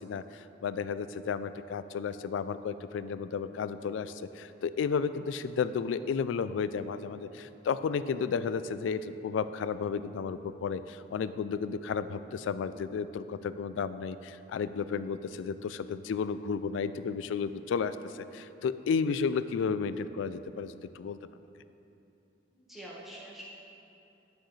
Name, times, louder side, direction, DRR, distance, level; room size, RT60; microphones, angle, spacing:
voice 1, 0.0-21.2, left 6 dB, 90° left, 14 dB, 0.3 m, -33 dB
voice 2, 22.5-23.4, right 1 dB, ahead, -7 dB, 1.3 m, -46 dB
10.5 x 6.2 x 3.2 m, 2.8 s
head